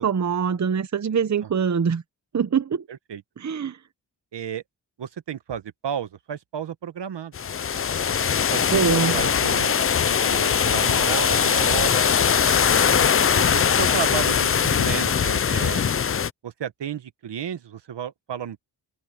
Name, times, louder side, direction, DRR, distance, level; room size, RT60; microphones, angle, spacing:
voice 1, 0.0-2.0 2.3-2.8 3.4-3.8 8.7-9.2, right 6 dB, 40° right, 0.8 m, -23 dB
voice 2, 2.9-3.2 4.3-4.6 5.0-7.3 8.5-9.8 10.1-12.0 12.6-15.9 16.4-18.6, right 8 dB, 70° right, 1.1 m, -32 dB
sound 1, 7.3-16.3, left 7 dB, 30° left, 0.4 m, -21 dB
wide cardioid pair, 115°, 44 cm